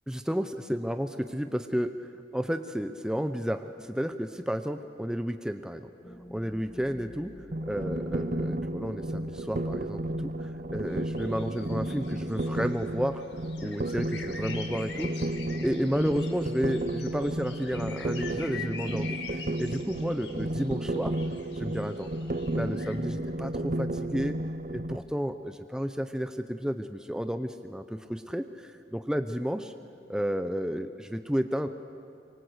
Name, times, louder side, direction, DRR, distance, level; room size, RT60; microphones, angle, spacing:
voice 1, 0.1-5.9 6.3-7.3 7.6-13.2 13.6-15.1 15.6-21.2 21.5-22.1 22.5-24.3 24.7-29.7 30.1-31.7, equal, 5° right, 8 dB, 0.6 m, -32 dB
sound 1, 6.0-11.5, equal, 30° left, 1.9 m, -52 dB
sound 2, 7.5-25.0, right 1 dB, 45° right, 0.7 m, -33 dB
sound 3, 10.9-23.0, left 6 dB, 80° left, 2.1 m, -45 dB
24.5 x 24.5 x 8.0 m, 2.5 s
head